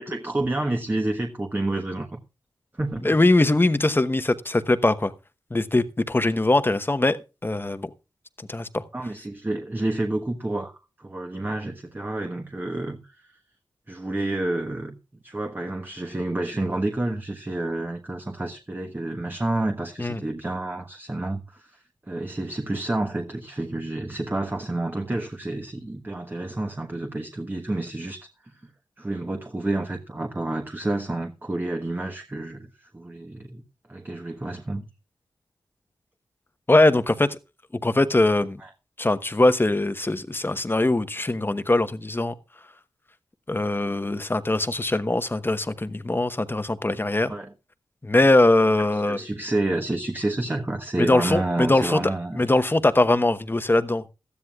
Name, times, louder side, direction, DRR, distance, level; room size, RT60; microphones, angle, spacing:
voice 1, 0.0-2.2 2.7-3.2 8.9-13.4 13.9-15.0 15.2-28.6 29.0-33.6 33.9-34.8 38.6-38.7 47.3-47.5 48.9-52.4, right 2 dB, 25° right, 1.3 m, -29 dB
voice 2, 3.0-5.1 5.5-7.9 8.5-8.8 20.0-20.2 36.7-37.4 37.8-38.6 39.0-42.3 43.5-47.3 48.0-49.2 51.0-52.0 52.3-54.1, left 2 dB, 25° left, 1.1 m, -21 dB
18.0 x 13.0 x 2.4 m
cardioid pair, 50°, 9 cm